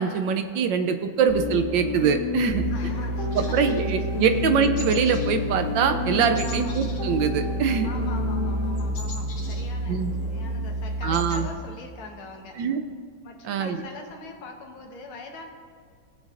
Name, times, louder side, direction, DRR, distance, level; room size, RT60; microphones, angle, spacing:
voice 1, 0.0-2.6 3.3-7.9 9.9-10.1 11.0-11.5 12.6-12.8 13.4-13.8, right 6 dB, 75° right, 8 dB, 1.2 m, -23 dB
sound 1, 1.3-8.9, left 4 dB, 20° right, 2.7 m, -31 dB
sound 2, 2.5-11.6, right 1 dB, 50° right, 3.8 m, -30 dB
voice 2, 2.7-3.6 4.3-4.6 6.4-6.8 7.8-12.6 13.2-15.5, left 3 dB, 90° left, 3 dB, 2.1 m, -42 dB
sound 3, 3.3-4.5 4.8-5.4 5.6-5.9 6.3-7.9 8.1-10.2 10.6-10.7 10.9-11.4, left 3 dB, 60° left, 2.1 m, -42 dB
18.5 x 8.0 x 2.5 m, 2.1 s
omnidirectional pair, 2.3 m